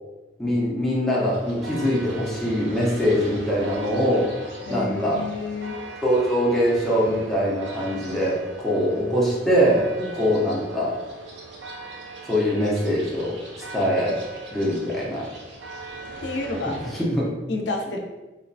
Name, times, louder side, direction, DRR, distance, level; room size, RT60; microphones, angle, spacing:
voice 1, 0.4-4.3 4.7-5.2 6.0-9.8 10.1-11.0 12.3-13.4 13.7-14.2 14.5-15.3 17.0-17.3, equal, ahead, -7 dB, 0.5 m, -23 dB
sound 1, 1.3-17.0, right 3 dB, 80° right, 0.5 m, -40 dB
voice 2, 4.7-5.7 10.0-10.3 16.2-16.8 17.1-17.2 17.5-18.0, left 2 dB, 80° left, 2 dB, 0.4 m, -30 dB
2.9 x 2.1 x 2.5 m, 1.1 s
head